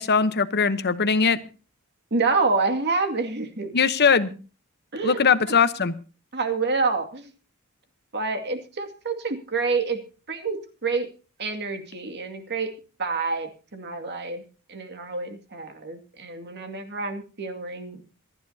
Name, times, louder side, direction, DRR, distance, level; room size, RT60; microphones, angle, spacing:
voice 1, 0.0-1.4 3.7-4.3 5.0-5.9, left 5 dB, 50° left, 12 dB, 1.0 m, -20 dB
voice 2, 2.1-3.7 4.9-5.2 6.3-7.3 8.1-10.0 10.3-11.1 11.4-12.7 13.0-14.4 14.7-18.0, right 4 dB, 55° right, 6 dB, 2.2 m, -27 dB
26.5 x 9.9 x 2.8 m, 0.35 s
head